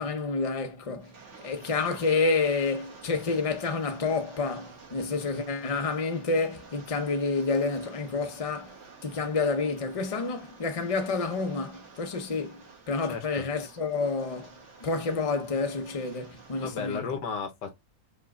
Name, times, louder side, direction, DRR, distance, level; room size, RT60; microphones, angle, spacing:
voice 1, 0.0-17.2, left 4 dB, 40° left, 0.5 m, -29 dB
Rain, 1.0-16.7, right 5 dB, 45° right, 1.4 m, -51 dB
voice 2, 13.1-13.5 16.6-17.8, left 6 dB, 85° left, 1.8 m, -34 dB
5.5 x 2.4 x 3.6 m
omnidirectional pair, 1.8 m